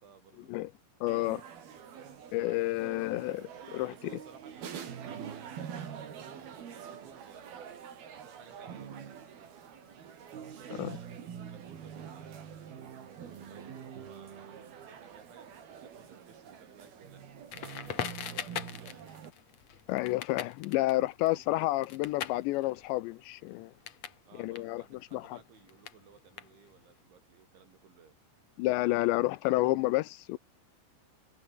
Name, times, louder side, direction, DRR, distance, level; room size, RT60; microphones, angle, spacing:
voice 1, 0.0-0.5 2.7-3.0 3.9-7.8 8.2-9.6 10.3-13.0 13.5-17.7 18.1-19.1 21.3-21.5 24.3-28.2, right 6 dB, 75° right, 7.2 m, -58 dB
voice 2, 1.0-1.4 2.3-3.9 10.8-10.9 19.9-23.7 24.4-24.8 25.1-25.2 28.6-30.4, left 18 dB, 80° left, 2.8 m, -30 dB
sound 1, 1.1-19.3, right 8 dB, 55° right, 4.7 m, -45 dB
Crackle, 17.5-24.2 24.5-26.9, left 9 dB, 55° left, 2.1 m, -41 dB
omnidirectional pair, 5.4 m